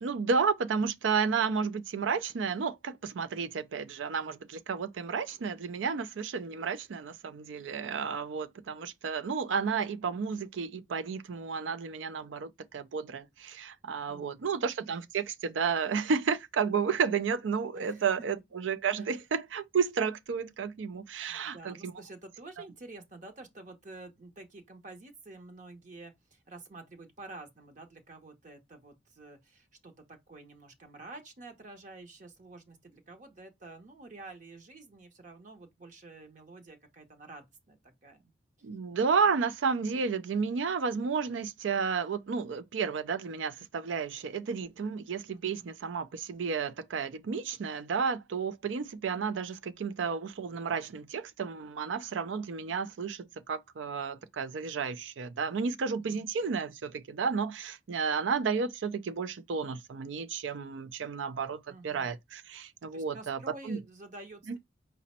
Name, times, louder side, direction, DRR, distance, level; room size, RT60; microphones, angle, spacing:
voice 1, 0.0-21.9 38.6-63.4 63.6-63.8, right 5 dB, 85° right, 0.4 m, -32 dB
voice 2, 14.1-14.7 17.7-18.3 18.9-19.1 21.3-38.2 45.3-45.7 55.9-56.3 61.7-62.2 62.9-64.6, right 2 dB, 45° right, 0.7 m, -49 dB
5.0 x 2.1 x 4.1 m
head